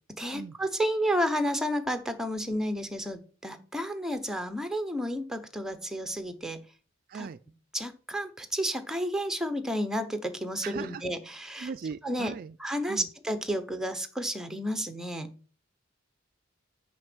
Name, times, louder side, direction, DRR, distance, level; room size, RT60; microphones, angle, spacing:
voice 1, 0.1-6.6 7.1-7.3 7.7-11.7 12.0-12.3 12.6-15.3, equal, 5° right, 0.8 m, -31 dB
voice 2, 7.1-7.4 10.6-11.0 11.6-12.6 12.9-13.1, right 6 dB, 45° right, 0.3 m, -38 dB
6.4 x 5.2 x 6.0 m
head